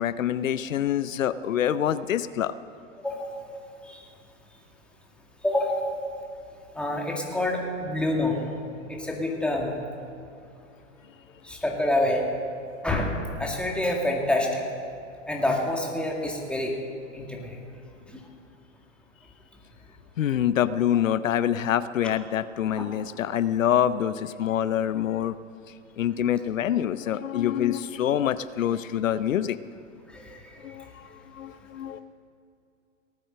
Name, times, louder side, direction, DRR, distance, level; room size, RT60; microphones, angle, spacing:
voice 1, 0.0-2.5 20.2-25.3 26.0-29.6 30.6-32.0, left 10 dB, 90° left, 15 dB, 0.6 m, -26 dB
voice 2, 5.4-5.9 6.8-8.4 8.9-9.7 11.4-12.2 12.8-14.6 15.3-16.7 17.1-17.6 22.8-22.9 30.1-30.7, left 1 dB, 5° left, 0 dB, 2.0 m, -27 dB
18.0 x 9.2 x 6.5 m, 2.6 s
hypercardioid pair, 115°, 38 cm